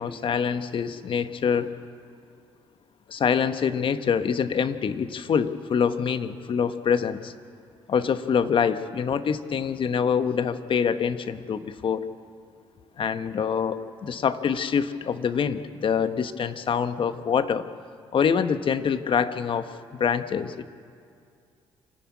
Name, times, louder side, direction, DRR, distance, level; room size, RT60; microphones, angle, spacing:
voice 1, 0.0-1.7 3.1-7.3 7.9-12.1 13.0-17.7 18.1-20.7, left 7 dB, 50° left, 11 dB, 1.2 m, -25 dB
27.5 x 12.5 x 8.4 m, 2.3 s
supercardioid pair, 70°, 11 cm